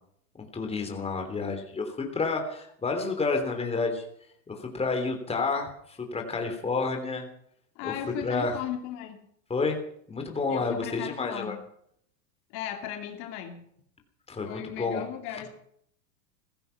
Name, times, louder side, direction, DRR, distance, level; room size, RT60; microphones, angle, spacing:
voice 1, 0.4-4.0 4.5-7.3 7.8-7.9 8.2-8.6 9.5-9.8 10.1-11.5 14.3-15.0, left 4 dB, 10° left, 3 dB, 3.4 m, -30 dB
voice 2, 7.7-9.2 10.5-11.6 12.5-13.6 14.4-15.5, left 10 dB, 55° left, 4 dB, 2.7 m, -36 dB
16.0 x 15.0 x 5.9 m, 0.69 s
supercardioid pair, 125°, 49 cm